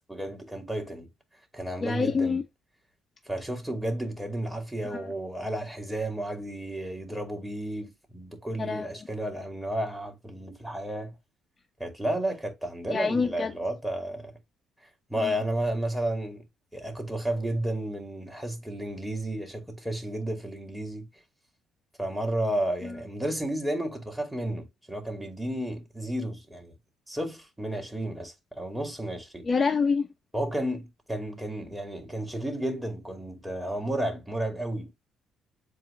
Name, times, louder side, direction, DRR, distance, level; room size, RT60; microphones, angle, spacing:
voice 1, 0.1-1.1 1.5-2.4 3.3-11.2 11.8-14.4 15.1-16.4 16.7-21.1 22.0-26.7 27.1-29.4 30.3-34.9, right 1 dB, 5° right, 2.5 m, -32 dB
voice 2, 1.8-2.4 4.9-5.0 8.6-8.9 12.9-13.5 15.2-15.3 29.4-30.1, left 5 dB, 35° left, 0.8 m, -26 dB
7.5 x 2.8 x 2.5 m
hypercardioid pair, 50°, 0 cm